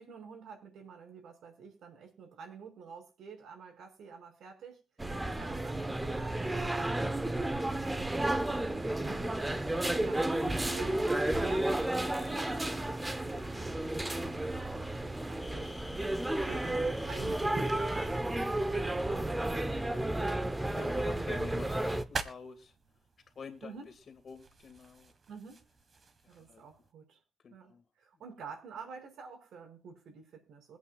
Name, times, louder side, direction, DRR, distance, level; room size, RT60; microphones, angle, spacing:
voice 1, 0.0-4.8 5.2-9.3 9.9-13.9 14.4-14.7 15.0-15.8 16.1-19.7 23.6-23.9 25.3-25.6 26.3-27.2 27.5-30.8, right 6 dB, 75° right, 3 dB, 5.7 m, -49 dB
sound 1, 5.0-22.0, right 1 dB, 15° right, 1.0 m, -32 dB
sound 2, 11.4-12.6 15.4-18.1, left 3 dB, 15° left, 2.3 m, -49 dB
sound 3, 15.0-26.9, right 4 dB, 45° right, 1.6 m, -49 dB
voice 2, 19.0-19.4 19.9-20.2 20.6-22.7 23.4-23.8 24.1-25.1 26.2-26.6 27.4-27.8, left 5 dB, 50° left, 8 dB, 2.0 m, -49 dB
23.0 x 8.5 x 2.4 m, 0.29 s
cardioid pair, 95°, 0 cm